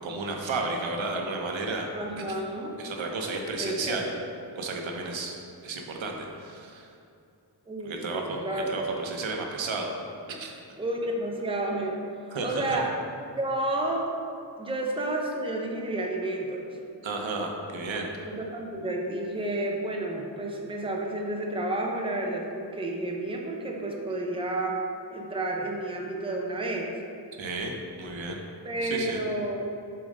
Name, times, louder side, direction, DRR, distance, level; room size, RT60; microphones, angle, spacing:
voice 1, 0.0-1.9 2.2-2.4 2.8-4.1 4.6-5.4 5.6-6.9 7.8-9.9 10.4-10.6 12.3-12.8 17.0-18.1 27.4-27.7 28.0-28.4 28.8-29.2, right 3 dB, 90° right, 2 dB, 0.9 m, -32 dB
voice 2, 1.9-2.7 3.6-4.0 7.7-8.9 10.8-12.0 12.4-13.0 13.4-14.1 14.6-16.8 18.2-24.8 25.1-26.9 28.6-29.6, right 1 dB, 10° right, 0 dB, 0.6 m, -31 dB
6.9 x 3.7 x 5.3 m, 2.6 s
wide cardioid pair, 145°, 45 cm